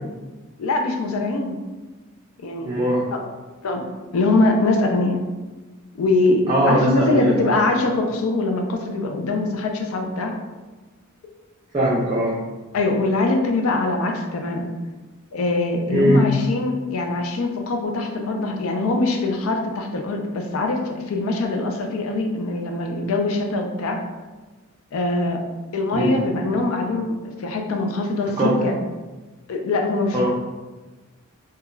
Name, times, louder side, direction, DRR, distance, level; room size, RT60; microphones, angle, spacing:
voice 1, 0.6-1.6 2.4-2.7 3.1-3.3 3.6-3.8 4.1-5.2 5.9-10.4 12.7-14.7 15.3-24.0 24.9-25.5 25.7-28.7 29.5-30.3, left 2 dB, 85° left, 3 dB, 0.4 m, -23 dB
voice 2, 2.6-3.0 6.5-7.5 11.7-12.4 15.9-16.2 25.9-26.2 28.4-28.6 30.1-30.3, right 1 dB, 25° right, -7 dB, 0.4 m, -20 dB
2.3 x 2.2 x 3.0 m, 1.2 s
head